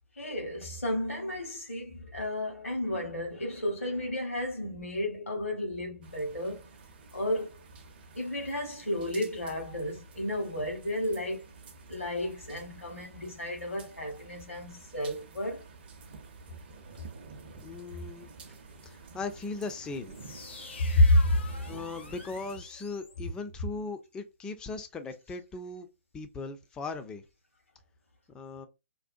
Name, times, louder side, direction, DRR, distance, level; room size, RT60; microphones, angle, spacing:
voice 1, 0.1-6.6 7.1-7.6 8.1-11.6 11.9-15.7 17.9-18.0 20.9-21.5, left 1 dB, 80° left, 1.1 m, -31 dB
sound 1, 6.0-22.6, right 4 dB, 45° right, 0.6 m, -51 dB
voice 2, 17.6-18.3 18.8-20.2 21.7-25.9 26.1-27.2 28.3-28.7, left 3 dB, 10° left, 0.3 m, -38 dB
sound 2, 20.1-23.9, left 4 dB, 55° left, 0.6 m, -48 dB
2.6 x 2.1 x 2.5 m
figure-of-eight pair, 125°, 7 cm